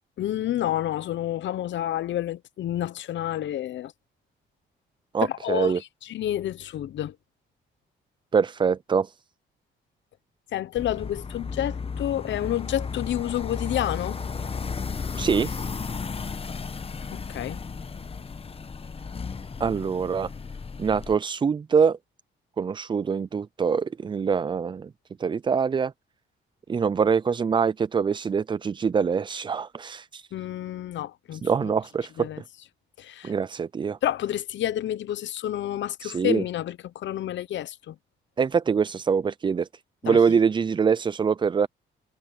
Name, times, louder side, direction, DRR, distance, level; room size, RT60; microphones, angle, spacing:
voice 1, 0.2-3.9 5.2-7.2 10.5-14.2 17.1-17.6 30.3-31.7 32.2-32.4 33.0-33.3 34.0-37.9 40.0-40.2, left 12 dB, 70° left, 1.0 m, -29 dB
voice 2, 5.1-5.8 8.3-9.1 15.2-15.7 19.6-20.3 20.8-22.0 22.6-24.9 25.2-25.9 26.7-30.3 31.4-32.3 33.2-34.0 36.0-36.4 38.4-39.7 40.0-41.7, right 6 dB, 25° right, 0.4 m, -24 dB
sound 1, 10.8-21.1, left 5 dB, 30° left, 1.2 m, -34 dB
cardioid pair, 90°, 20 cm